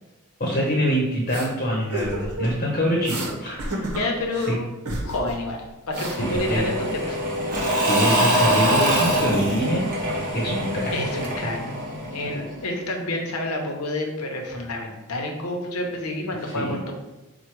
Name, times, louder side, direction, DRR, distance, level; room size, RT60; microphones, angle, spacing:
voice 1, 0.4-3.8 4.5-4.6 6.2-6.7 7.8-9.9 10.3-10.9 16.5-16.8, equal, 35° left, -3 dB, 0.8 m, -25 dB
sound 1, 1.3-1.5 1.9-2.6 3.0-3.3 3.6-4.5 4.9-5.4 5.6-7.0, right 1 dB, 80° right, 0.9 m, -31 dB
voice 2, 3.9-4.7 5.0-7.2 10.9-11.6 12.1-16.9, left 1 dB, 75° left, 2 dB, 0.8 m, -29 dB
Engine / Mechanisms / Drill, 6.0-12.6, equal, 40° right, 0.9 m, -24 dB
4.5 x 2.2 x 4.5 m, 1.0 s
head